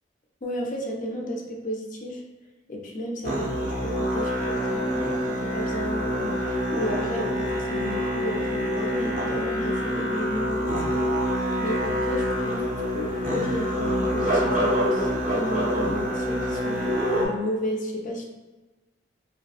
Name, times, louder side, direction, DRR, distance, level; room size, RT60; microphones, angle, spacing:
voice 1, 0.4-2.2 2.7-11.2 11.6-12.6 12.9-16.8 17.2-18.3, left 1 dB, 45° left, 0 dB, 0.5 m, -33 dB
Musical instrument, 3.2-17.3, equal, 45° right, 0.7 m, -26 dB
3.9 x 2.2 x 2.3 m, 1.2 s
head